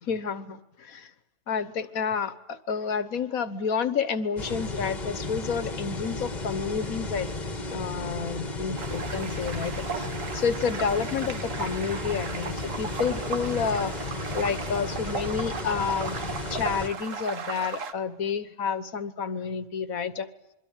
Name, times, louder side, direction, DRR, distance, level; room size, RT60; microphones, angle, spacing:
voice 1, 0.0-1.1 1.5-7.3 7.7-10.1 10.3-13.9 14.3-20.3, left 6 dB, 65° left, 13 dB, 1.6 m, -30 dB
sound 1, 4.4-16.9, left 3 dB, 30° left, 1.7 m, -34 dB
sound 2, 8.8-17.9, right 5 dB, 60° right, 1.7 m, -36 dB
27.0 x 23.0 x 9.0 m, 0.87 s
omnidirectional pair, 1.6 m